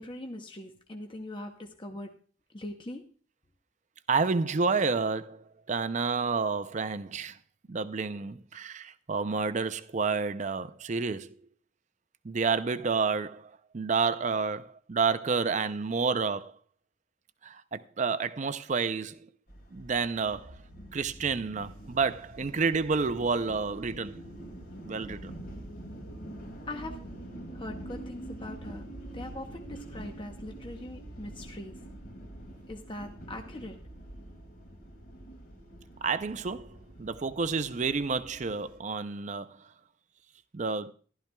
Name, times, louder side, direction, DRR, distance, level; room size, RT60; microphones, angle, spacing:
voice 1, 0.0-2.1 2.5-3.0 26.7-27.0 27.5-28.9 29.1-31.8 32.7-33.7, left 1 dB, 25° left, 0.8 m, -41 dB
voice 2, 4.1-7.4 7.7-11.4 12.2-16.5 17.4-19.2 19.7-20.6 20.9-24.2 24.8-25.4 36.0-39.7 40.5-40.9, right 4 dB, 40° right, 0.5 m, -30 dB
sound 1, 19.5-38.8, right 1 dB, 50° left, 2.3 m, -45 dB
14.5 x 12.0 x 2.3 m
head